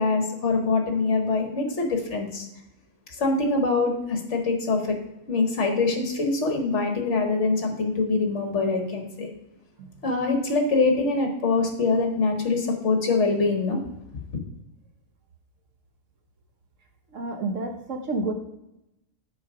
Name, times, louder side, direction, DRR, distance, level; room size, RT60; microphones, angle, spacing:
voice 1, 0.0-2.5 3.2-5.0 5.3-9.3 10.0-13.8, left 3 dB, 55° left, 3 dB, 1.5 m, -24 dB
voice 2, 17.1-18.3, right 2 dB, 60° right, 4 dB, 1.4 m, -29 dB
7.1 x 5.0 x 5.0 m, 0.89 s
omnidirectional pair, 1.5 m